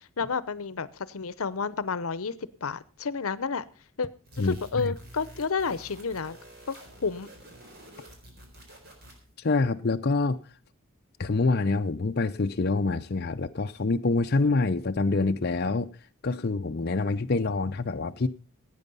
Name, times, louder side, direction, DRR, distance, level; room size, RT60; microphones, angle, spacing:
voice 1, 0.2-2.3 2.6-3.6 4.0-4.1 4.4-6.4 6.7-7.3, left 5 dB, 80° left, 0.8 m, -30 dB
sound 1, 4.3-9.3, right 1 dB, 50° right, 4.3 m, -49 dB
voice 2, 4.4-4.9 9.4-10.4 11.2-15.9 16.2-18.3, left 3 dB, 50° left, 0.6 m, -26 dB
16.5 x 9.2 x 5.4 m
head